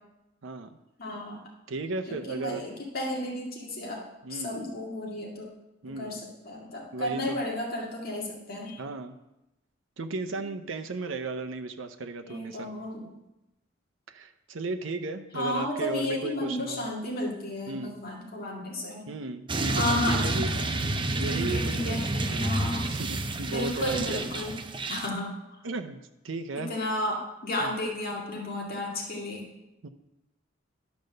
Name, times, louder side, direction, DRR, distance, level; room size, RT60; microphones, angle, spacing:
voice 1, 1.0-1.4 2.1-5.5 5.9-8.8 12.2-13.1 15.3-19.1 19.7-20.4 21.3-22.9 23.5-24.6 24.9-25.4 26.6-29.4, left 1 dB, 50° left, -2 dB, 2.1 m, -33 dB
voice 2, 1.7-2.6 4.2-4.6 5.8-6.2 6.9-7.4 8.8-9.2 10.0-12.7 14.1-16.9 17.7-17.9 19.1-20.5 21.2-22.5 22.9-24.3 25.6-26.7 27.6-27.7 29.8-29.9, right 3 dB, 85° right, 7 dB, 0.7 m, -35 dB
sound 1, 19.5-25.1, right 2 dB, 25° right, 0.6 m, -29 dB
11.5 x 5.2 x 6.6 m, 0.93 s
head